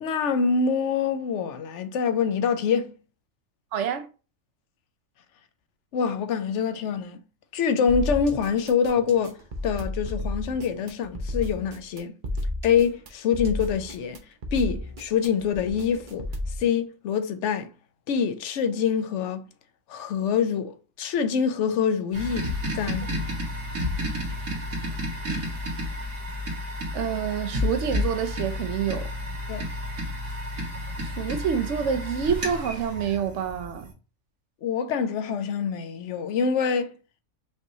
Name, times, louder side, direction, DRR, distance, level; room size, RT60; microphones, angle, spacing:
voice 1, 0.0-2.9 5.9-7.2 7.5-9.4 9.6-12.1 12.6-14.2 14.5-16.3 16.6-17.7 18.1-19.5 19.9-23.1 29.5-29.7 34.6-37.0, left 6 dB, 65° left, 0.9 m, -25 dB
voice 2, 3.7-4.1 26.9-29.1 31.0-33.9, right 8 dB, 65° right, 0.9 m, -27 dB
sound 1, 7.9-16.6, left 1 dB, 45° right, 0.7 m, -33 dB
sound 2, 22.1-33.9, left 1 dB, 80° right, 1.9 m, -31 dB
5.2 x 3.0 x 2.7 m
omnidirectional pair, 1.4 m